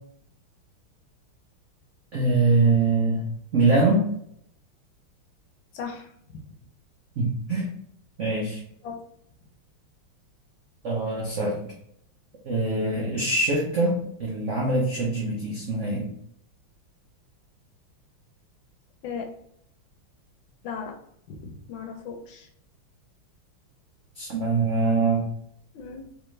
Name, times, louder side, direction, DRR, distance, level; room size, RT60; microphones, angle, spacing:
voice 1, 2.1-4.1 7.2-7.7 8.2-8.6 10.8-11.7 12.5-16.1 24.2-25.3, right 3 dB, 85° right, -3 dB, 0.6 m, -23 dB
voice 2, 5.7-6.4 8.8-9.0 12.9-13.1 19.0-19.3 20.6-21.0 21.3-22.5 25.7-26.1, left 6 dB, 70° left, 3 dB, 1.2 m, -37 dB
3.4 x 3.0 x 3.2 m, 0.69 s
omnidirectional pair, 2.4 m